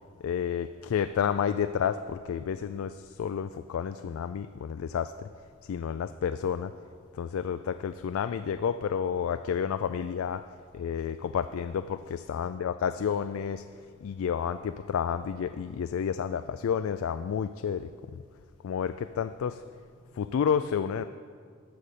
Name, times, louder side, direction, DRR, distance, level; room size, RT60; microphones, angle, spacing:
voice 1, 0.2-5.3 5.6-6.7 7.1-10.4 10.7-13.6 14.0-18.2 18.6-19.6 20.1-21.0, left 7 dB, 75° left, 11 dB, 0.3 m, -30 dB
13.0 x 5.6 x 6.7 m, 2.1 s
head